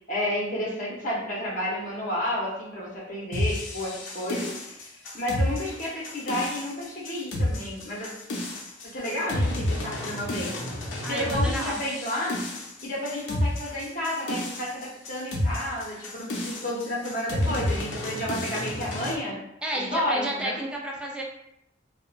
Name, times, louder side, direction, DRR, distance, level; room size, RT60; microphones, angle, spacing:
voice 1, 0.1-8.1 8.8-10.5 10.9-12.4 12.8-19.4 19.8-20.6, left 1 dB, 45° left, -4 dB, 0.8 m, -31 dB
sound 1, 3.3-19.2, left 1 dB, 75° left, 0.5 m, -30 dB
voice 2, 11.0-11.8 19.6-21.2, right 1 dB, 5° right, -3 dB, 0.3 m, -31 dB
2.7 x 2.1 x 2.4 m, 0.79 s
head